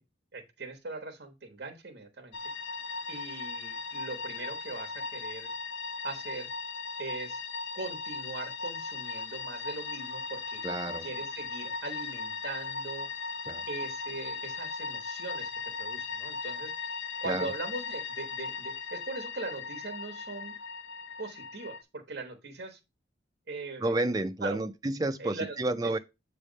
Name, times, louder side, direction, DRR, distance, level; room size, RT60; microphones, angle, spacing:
voice 1, 0.3-2.3 3.1-5.5 6.0-6.5 7.0-7.4 7.7-10.6 11.0-13.1 13.7-16.7 17.2-20.6 21.2-22.8 23.5-24.0 24.4-24.6 25.2-25.6, right 3 dB, 60° right, 1.2 m, -40 dB
sound 1, 2.3-21.8, left 4 dB, 75° left, 0.5 m, -38 dB
voice 2, 10.6-11.1 13.5-13.6 17.2-17.5 23.8-26.0, right 2 dB, 20° right, 0.4 m, -30 dB
7.3 x 3.4 x 5.1 m
head